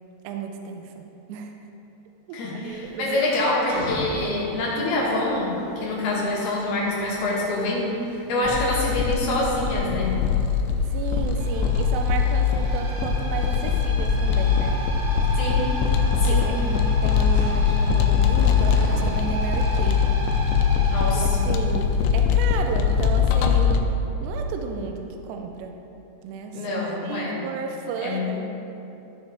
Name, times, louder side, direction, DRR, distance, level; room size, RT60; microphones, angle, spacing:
voice 1, 0.2-1.5 2.3-3.3 8.3-8.5 10.9-14.8 16.3-20.1 21.1-23.9 24.2-25.8 26.2-28.5, right 5 dB, 85° right, 4 dB, 2.6 m, -33 dB
voice 2, 2.3-10.2 15.4-15.7 16.2-16.4 20.9-21.5 26.5-27.5 28.0-28.3, left 2 dB, 65° left, -5 dB, 3.2 m, -26 dB
sound 1, 2.6-22.5, left 2 dB, 35° left, 1.3 m, -42 dB
sound 2, 8.4-23.8, left 6 dB, 85° left, 2.8 m, -22 dB
sound 3, 11.4-22.2, right 1 dB, 60° right, 2.3 m, -35 dB
14.0 x 7.1 x 3.5 m, 2.9 s
omnidirectional pair, 5.2 m